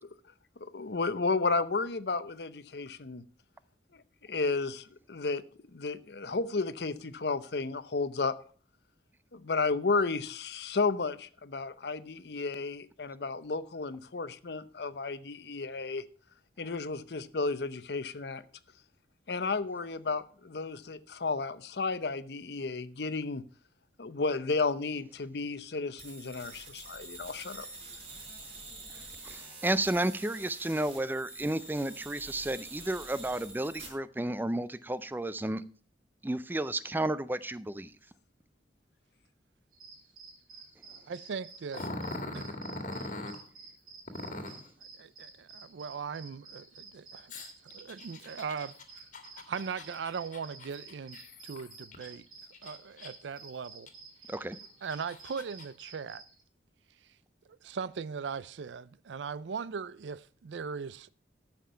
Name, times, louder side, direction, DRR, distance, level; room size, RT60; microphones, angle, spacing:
voice 1, 0.6-3.2 4.2-5.4 5.7-8.3 9.3-16.0 16.6-18.4 19.3-23.4 24.0-27.7, left 4 dB, 65° left, 0.7 m, -32 dB
sound 1, 26.0-33.9, right 2 dB, 35° right, 4.5 m, -47 dB
voice 2, 29.3-35.6 36.2-37.9 54.3-54.6, right 1 dB, 10° right, 0.4 m, -32 dB
sound 2, 39.7-56.4, right 4 dB, 50° right, 2.4 m, -51 dB
voice 3, 40.9-41.9 42.3-42.6 45.0-49.0 49.5-51.2 51.4-52.3 52.6-53.9 54.8-56.2 57.6-61.1, right 6 dB, 85° right, 0.4 m, -39 dB
Growling, 41.7-43.4 44.1-44.7 47.3-52.1 52.5-53.3 53.9-54.0 54.6-55.7, left 2 dB, 45° left, 1.8 m, -41 dB
13.5 x 5.9 x 5.6 m
head